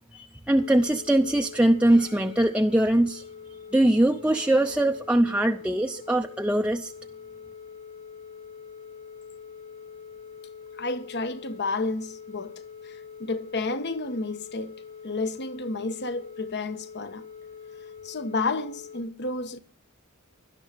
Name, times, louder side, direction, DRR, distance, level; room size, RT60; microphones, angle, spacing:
voice 1, 0.1-3.2 3.7-6.9, right 1 dB, 5° right, 0.7 m, -22 dB
sound 1, 0.6-19.0, left 6 dB, 70° left, 6.4 m, -44 dB
voice 2, 10.8-12.5 13.2-14.7 15.0-17.2 18.0-19.6, left 3 dB, 55° left, 1.2 m, -31 dB
17.5 x 12.0 x 5.1 m
head